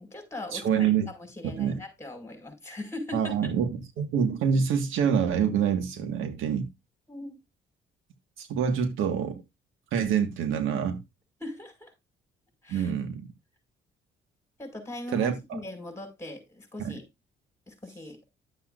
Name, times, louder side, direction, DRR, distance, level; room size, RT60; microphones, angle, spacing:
voice 1, 0.0-3.5 7.1-7.4 11.4-11.9 12.6-12.9 14.6-17.0 17.7-18.2, left 2 dB, 15° left, 5.3 m, -40 dB
voice 2, 0.5-1.1 1.6-1.8 3.1-3.7 4.0-6.7 8.4-9.4 9.9-11.0 12.7-13.3 15.1-15.6 16.8-16.9, right 7 dB, 85° right, 1.7 m, -26 dB
12.5 x 7.7 x 2.5 m
cardioid pair, 90°, 20 cm